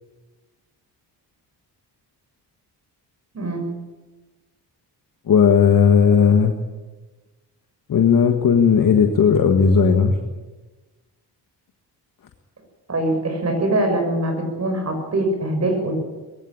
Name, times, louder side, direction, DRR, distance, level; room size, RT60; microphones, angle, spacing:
voice 1, 5.3-6.5 7.9-10.2, left 6 dB, 50° left, 5 dB, 1.7 m, -15 dB
voice 2, 12.9-15.9, right 1 dB, 35° right, 4 dB, 6.4 m, -23 dB
21.0 x 16.5 x 8.7 m, 1.2 s
cardioid pair, 135°, 42 cm